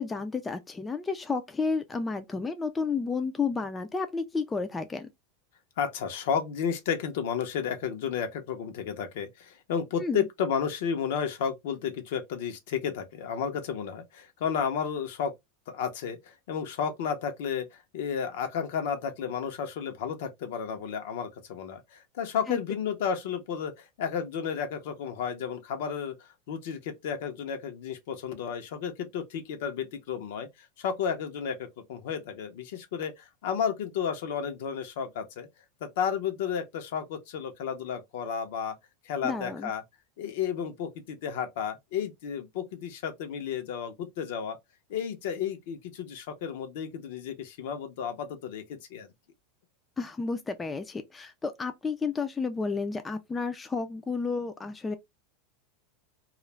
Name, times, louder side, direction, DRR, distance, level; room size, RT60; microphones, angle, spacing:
voice 1, 0.0-5.1 10.0-10.2 22.5-22.6 39.2-39.7 50.0-55.0, left 4 dB, 15° left, 0.3 m, -31 dB
voice 2, 5.8-15.3 15.7-30.5 30.8-35.5 35.8-38.7 39.0-39.8 40.2-44.6 44.9-49.1, left 7 dB, 70° left, 0.7 m, -32 dB
2.4 x 2.0 x 3.1 m
supercardioid pair, 140°, 0 cm